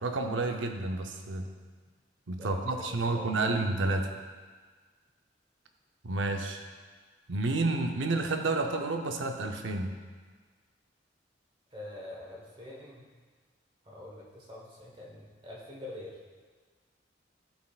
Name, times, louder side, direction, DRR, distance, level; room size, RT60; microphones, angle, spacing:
voice 1, 0.0-1.5 2.3-4.1 6.0-6.6 7.3-9.9, right 2 dB, 90° right, 4 dB, 0.6 m, -30 dB
voice 2, 2.4-3.6 11.7-13.1 13.8-16.2, left 1 dB, 30° right, -3 dB, 1.1 m, -45 dB
11.5 x 4.3 x 2.4 m, 1.5 s
head